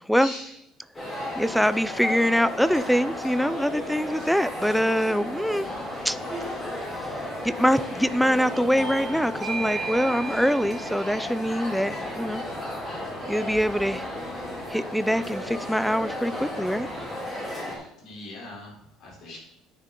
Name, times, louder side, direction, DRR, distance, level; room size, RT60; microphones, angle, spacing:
voice 1, 0.2-0.6 17.7-19.4, left 2 dB, 50° left, -1 dB, 3.3 m, -41 dB
sound 1, 0.9-17.8, left 1 dB, 15° left, 2.9 m, -34 dB
voice 2, 1.4-5.7 6.0-6.2 7.4-12.4 13.3-14.1 14.7-16.9, equal, ahead, 15 dB, 0.3 m, -24 dB
sound 2, 5.6-17.2, left 2 dB, 65° left, 2.4 m, -48 dB
Bell / Doorbell, 8.8-13.9, right 4 dB, 35° right, 2.4 m, -38 dB
9.7 x 6.7 x 3.7 m, 0.80 s
cardioid pair, 145°, 0 cm